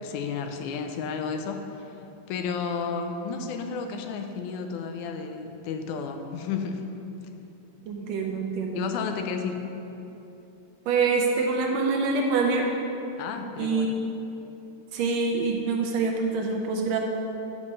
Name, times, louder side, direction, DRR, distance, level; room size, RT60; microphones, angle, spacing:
voice 1, 0.0-1.9 2.3-6.8 8.7-9.6 13.2-14.0, left 5 dB, 85° left, 5 dB, 2.0 m, -32 dB
voice 2, 7.9-8.8 10.9-12.7 13.6-14.0 14.9-17.0, right 4 dB, 80° right, 1 dB, 1.6 m, -25 dB
9.5 x 5.4 x 3.2 m, 3.0 s
omnidirectional pair, 3.4 m